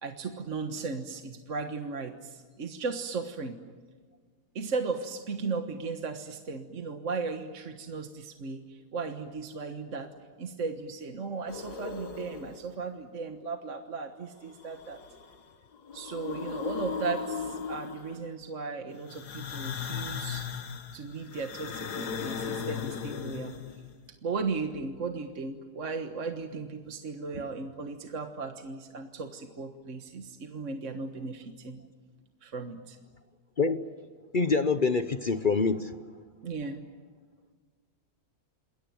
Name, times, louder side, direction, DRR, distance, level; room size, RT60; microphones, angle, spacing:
voice 1, 0.0-3.6 4.5-10.1 10.4-15.0 15.9-20.5 20.9-23.6 24.2-31.8 32.4-33.0 36.4-36.8, right 4 dB, 50° right, 5 dB, 1.7 m, -36 dB
sound 1, 11.5-12.7 14.5-15.4 15.7-18.3 19.1-23.9, left 7 dB, 80° left, 1.9 m, -37 dB
voice 2, 33.6-33.9 34.3-36.0, left 4 dB, 40° left, 11 dB, 0.8 m, -26 dB
28.0 x 21.0 x 9.4 m, 1.5 s
omnidirectional pair, 1.7 m